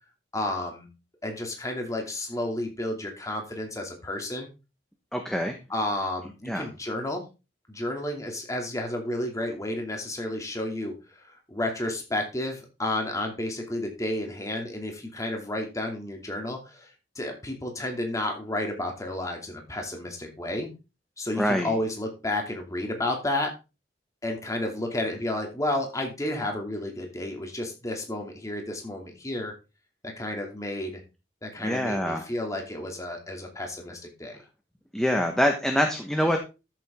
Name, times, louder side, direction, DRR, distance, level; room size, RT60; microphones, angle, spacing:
voice 1, 0.3-0.9 1.2-4.5 5.7-7.2 7.7-16.9 17.1-20.7 21.2-23.5 24.2-29.5 30.0-31.0 31.4-34.4, left 1 dB, 20° left, 2 dB, 2.7 m, -31 dB
voice 2, 5.1-5.6 6.5-6.7 21.4-21.7 31.6-32.2 34.9-36.4, equal, 5° left, 3 dB, 1.3 m, -25 dB
13.0 x 7.4 x 3.7 m, 0.29 s
head